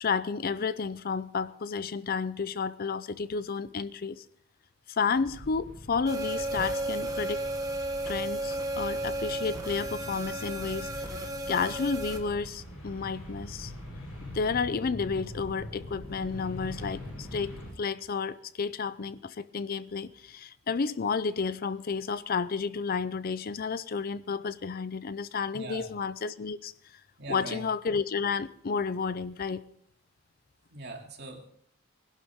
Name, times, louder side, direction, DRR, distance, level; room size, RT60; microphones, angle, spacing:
voice 1, 0.0-4.2 4.9-7.4 8.0-11.1 11.5-13.7 14.3-27.0 27.3-29.6, left 5 dB, 45° left, 15 dB, 0.5 m, -31 dB
sound 1, 5.1-17.7, left 1 dB, 80° left, 6.8 m, -43 dB
sound 2, 6.1-12.2, right 1 dB, 15° right, 1.5 m, -33 dB
voice 2, 25.5-25.9 27.2-27.6 30.7-31.5, right 2 dB, 50° right, 1 dB, 2.6 m, -41 dB
19.5 x 12.0 x 3.6 m, 0.65 s
head